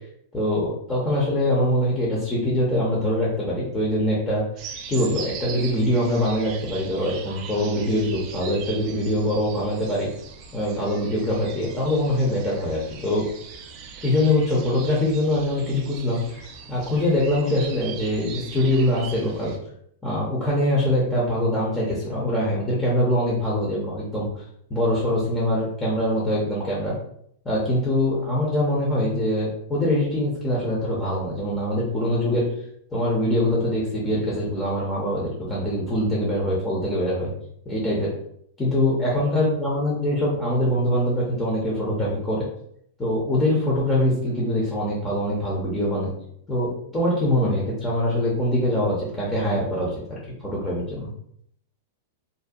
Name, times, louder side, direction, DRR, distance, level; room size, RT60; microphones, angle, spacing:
voice 1, 0.3-4.4 4.9-10.1 10.5-13.2 14.0-19.5 20.0-24.4 24.7-27.0 27.4-32.5 32.9-37.3 37.7-38.1 38.6-42.5 43.0-46.1 46.5-51.1, left 1 dB, 15° left, -6 dB, 0.6 m, -23 dB
sound 1, 4.6-19.6, right 6 dB, 40° right, 0.3 m, -40 dB
2.5 x 2.1 x 2.3 m, 0.69 s
hypercardioid pair, 135°, 0 cm